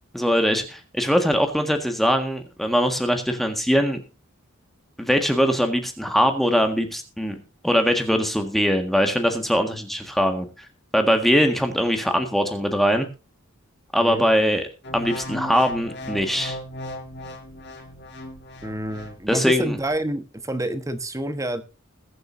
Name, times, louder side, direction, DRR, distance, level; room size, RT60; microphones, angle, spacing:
voice 1, 0.1-4.0 5.0-7.4 7.6-10.6 10.9-13.1 13.9-14.7 14.9-16.6 19.3-19.8, equal, ahead, 5 dB, 1.6 m, -21 dB
sound 1, 14.8-19.2 19.7-19.9, left 1 dB, 55° left, 5.5 m, -36 dB
voice 2, 18.6-21.6, right 1 dB, 15° right, 10 dB, 1.2 m, -28 dB
21.0 x 7.9 x 2.7 m, 0.32 s
head